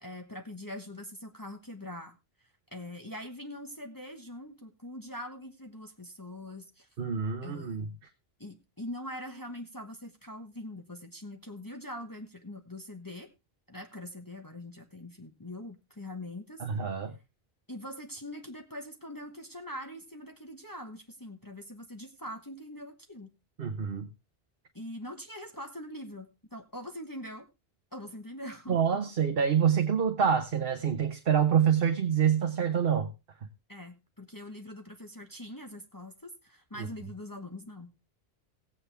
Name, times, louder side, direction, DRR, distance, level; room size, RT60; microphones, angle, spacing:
voice 1, 0.0-2.2 2.7-6.9 7.4-7.9 8.4-13.3 13.7-16.6 17.7-23.3 24.7-27.5 27.9-28.8 33.7-37.9, left 1 dB, 20° left, 3 dB, 1.2 m, -43 dB
voice 2, 7.0-7.9 16.6-17.1 23.6-24.1 28.7-33.1, right 7 dB, 65° right, 6 dB, 1.2 m, -26 dB
17.5 x 8.2 x 3.4 m, 0.25 s
omnidirectional pair, 1.0 m